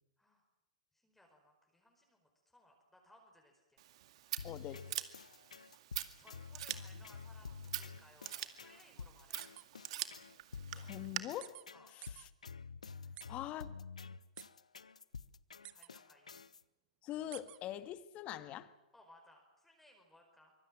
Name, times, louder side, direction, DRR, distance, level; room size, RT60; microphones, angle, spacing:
voice 1, 0.9-3.8 5.4-5.6 6.2-9.5 11.7-11.9 13.0-13.2 15.7-16.4 18.9-20.5, left 1 dB, 5° left, 5.0 m, -64 dB
Scissors, 3.8-11.2, right 13 dB, 60° right, 2.1 m, -45 dB
sound 1, 4.4-16.6, left 5 dB, 85° left, 0.9 m, -50 dB
voice 2, 4.4-4.9 10.8-11.6 11.9-12.3 13.3-13.8 17.0-18.7, left 13 dB, 35° left, 1.7 m, -44 dB
sound 2, 9.4-9.6 10.1-10.2 11.4-11.6 12.0-12.3 13.2-13.3 14.4-14.5 15.6-15.9 17.3-17.6, right 17 dB, 35° right, 1.4 m, -50 dB
25.0 x 24.0 x 7.7 m
hypercardioid pair, 105°, 4 cm